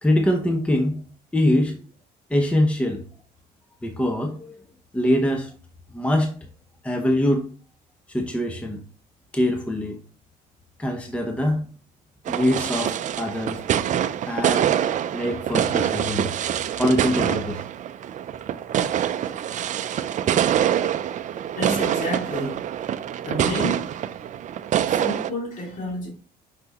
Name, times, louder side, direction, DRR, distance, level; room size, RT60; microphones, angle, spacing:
voice 1, 0.0-1.0 1.3-1.8 2.3-3.0 3.8-4.5 4.9-5.5 5.9-6.3 6.8-7.4 8.1-8.8 9.3-10.0 10.8-11.7 12.3-13.6 14.3-14.7 15.1-16.3 16.8-17.6, left 1 dB, 5° left, 0.8 m, -23 dB
sound 1, 12.3-25.3, right 10 dB, 50° right, 0.5 m, -25 dB
voice 2, 21.5-22.7 23.2-24.0 24.9-26.1, left 1 dB, 50° left, 2.6 m, -30 dB
5.9 x 5.7 x 2.9 m
cardioid pair, 110°, 17 cm